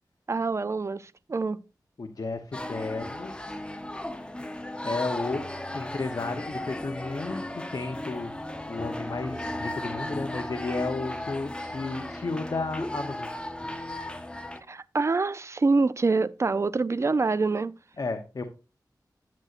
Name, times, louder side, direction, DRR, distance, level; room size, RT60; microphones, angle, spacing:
voice 1, 0.3-1.6 14.7-17.7, right 3 dB, 40° right, 0.4 m, -25 dB
voice 2, 2.0-3.6 4.8-8.3 8.7-13.3 18.0-18.4, left 3 dB, 55° left, 0.8 m, -33 dB
sound 1, 2.5-14.6, left 1 dB, 15° left, 0.8 m, -35 dB
10.5 x 7.8 x 2.5 m
wide cardioid pair, 95°, 7 cm